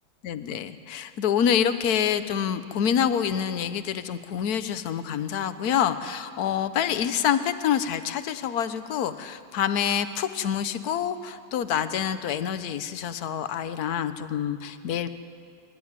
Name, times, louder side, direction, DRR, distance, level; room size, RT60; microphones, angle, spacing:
voice 1, 0.2-15.1, left 8 dB, 60° left, 11 dB, 1.3 m, -27 dB
25.0 x 13.0 x 9.6 m, 2.2 s
omnidirectional pair, 2.1 m